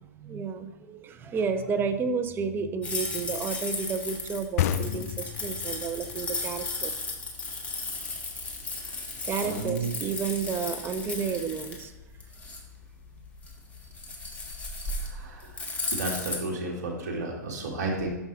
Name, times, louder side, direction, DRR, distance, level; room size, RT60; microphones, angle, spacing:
voice 1, 0.0-6.9 9.2-11.9, right 5 dB, 20° right, 8 dB, 0.5 m, -31 dB
sound 1, 2.8-16.4, left 3 dB, 15° left, 1.2 m, -35 dB
sound 2, 4.6-8.0, left 11 dB, 55° left, 0.4 m, -32 dB
voice 2, 9.4-9.9 15.0-18.1, right 2 dB, 65° right, -1 dB, 1.7 m, -33 dB
5.9 x 5.4 x 3.9 m, 1.0 s
hypercardioid pair, 110°, 10 cm